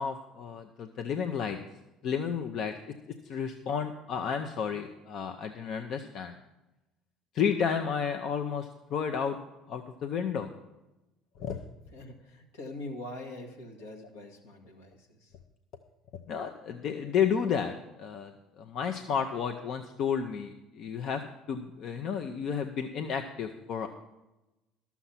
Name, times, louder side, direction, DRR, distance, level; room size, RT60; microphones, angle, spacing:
voice 1, 0.0-1.6 2.0-2.7 3.2-6.4 7.3-9.4 9.7-10.5 11.4-11.6 16.3-21.2 21.5-23.9, left 7 dB, 60° left, 6 dB, 0.7 m, -32 dB
voice 2, 11.9-15.3, left 2 dB, 85° left, 1 dB, 1.7 m, -43 dB
12.0 x 7.1 x 5.8 m, 1.0 s
hypercardioid pair, 65°, 0 cm